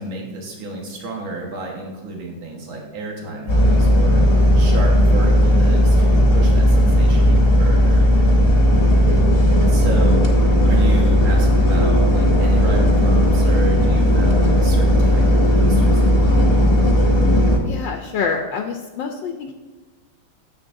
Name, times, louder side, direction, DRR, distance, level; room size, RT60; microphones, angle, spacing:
voice 1, 0.0-4.2 4.6-8.1 9.7-10.2 10.6-16.5, right 2 dB, 75° right, -1 dB, 2.3 m, -31 dB
sound 1, 3.5-17.6, equal, 35° left, 1.2 m, -15 dB
voice 2, 17.6-19.5, left 5 dB, 75° left, 3 dB, 1.3 m, -26 dB
10.0 x 7.7 x 2.6 m, 1.3 s
omnidirectional pair, 2.2 m